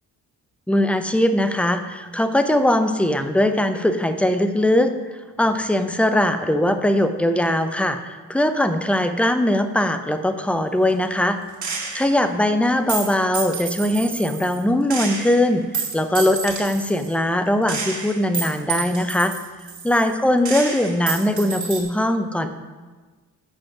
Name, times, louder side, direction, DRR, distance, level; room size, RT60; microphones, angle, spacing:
voice 1, 0.7-4.9 5.4-11.4 11.9-19.3 19.8-22.5, left 1 dB, 5° left, 9 dB, 0.7 m, -20 dB
Gunshot gunfire, 11.6-12.2 12.9-14.6 14.9-17.1 17.7-20.2 20.5-21.8, right 5 dB, 40° right, 2.2 m, -29 dB
7.5 x 5.2 x 5.9 m, 1.3 s
supercardioid pair, 55°, 43 cm